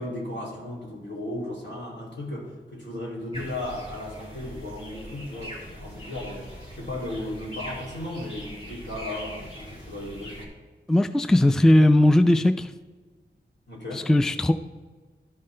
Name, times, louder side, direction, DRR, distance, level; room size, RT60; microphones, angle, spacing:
voice 1, 0.0-10.5 13.7-14.1, left 1 dB, 80° left, -4 dB, 2.8 m, -35 dB
sound 1, 3.3-10.5, equal, 35° left, 2.8 m, -41 dB
voice 2, 10.9-12.7 13.9-14.5, left 1 dB, 5° left, 10 dB, 0.3 m, -18 dB
12.5 x 5.5 x 3.3 m, 1.4 s
wide cardioid pair, 85°, 18 cm